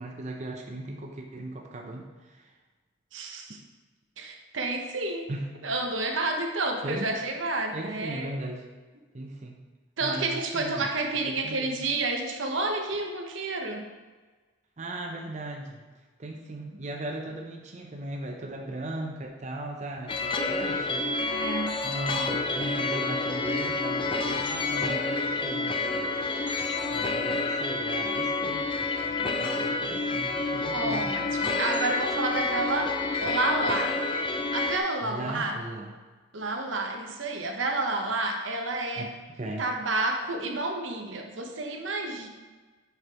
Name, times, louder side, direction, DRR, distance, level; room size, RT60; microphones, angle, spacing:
voice 1, 0.0-2.5 5.3-5.5 6.8-7.1 7.7-8.6 9.1-9.6 10.0-10.9 11.3-11.8 14.8-15.8 16.2-21.1 21.8-26.2 26.9-28.7 29.4-31.0 35.0-35.9 39.0-39.7, right 1 dB, 35° right, 1 dB, 0.6 m, -38 dB
voice 2, 3.1-3.6 4.2-5.3 5.6-8.3 10.0-13.9 21.2-21.7 28.5-28.6 29.2-29.6 30.7-34.0 34.5-35.6 36.3-39.1 39.6-42.3, right 2 dB, 80° right, 3 dB, 0.9 m, -30 dB
sound 1, 20.1-34.8, left 3 dB, 25° left, 0.4 m, -29 dB
8.0 x 5.1 x 3.0 m, 1.3 s
head